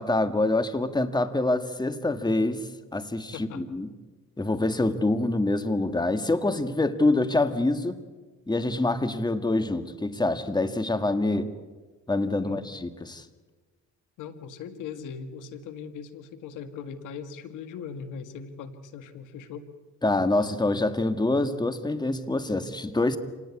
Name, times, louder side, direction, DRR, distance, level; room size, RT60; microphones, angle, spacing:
voice 1, 0.0-3.9 4.4-8.0 8.5-11.4 12.1-13.3 20.0-23.2, left 2 dB, 15° left, 9 dB, 1.8 m, -26 dB
voice 2, 3.3-3.6 11.2-11.5 12.4-12.6 14.2-19.6, left 6 dB, 90° left, 9 dB, 1.9 m, -40 dB
28.0 x 19.0 x 8.5 m, 1.3 s
cardioid pair, 90°, 30 cm